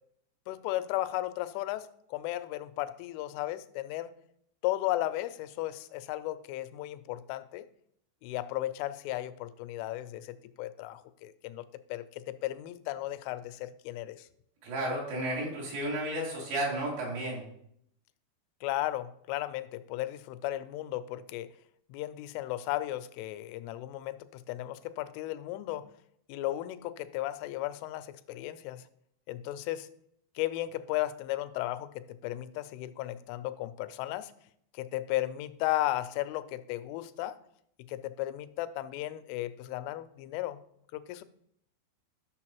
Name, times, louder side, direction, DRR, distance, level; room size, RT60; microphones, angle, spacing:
voice 1, 0.5-4.1 4.6-7.7 8.2-14.3 18.6-21.5 21.9-25.9 26.3-28.9 29.3-29.9 30.4-34.3 34.7-37.4 37.8-40.6 40.9-41.2, left 15 dB, 90° left, 13 dB, 3.0 m, -35 dB
voice 2, 14.6-17.4, right 1 dB, 80° right, -4 dB, 5.2 m, -32 dB
13.0 x 6.3 x 3.0 m, 0.70 s
omnidirectional pair, 5.5 m